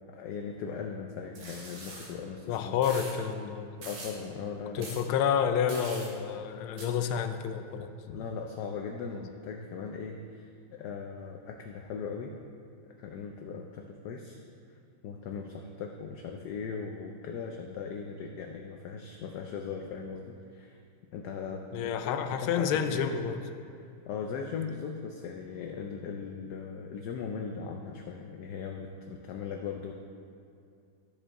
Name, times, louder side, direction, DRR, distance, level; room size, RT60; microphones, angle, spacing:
voice 1, 0.1-2.8 3.9-4.9 8.1-12.3 13.0-14.4 15.0-20.8 21.1-23.0 24.1-29.9, left 6 dB, 75° left, 2 dB, 1.0 m, -39 dB
sound 1, 1.3-2.1 2.8-3.1 3.8-4.2 4.8-5.0 5.7-6.1 6.8-6.9, right 2 dB, 85° right, 2.2 m, -43 dB
voice 2, 2.5-3.9 4.7-7.9 21.7-23.4, left 8 dB, 90° left, 8 dB, 1.5 m, -29 dB
13.5 x 5.1 x 3.6 m, 2.4 s
omnidirectional pair, 2.2 m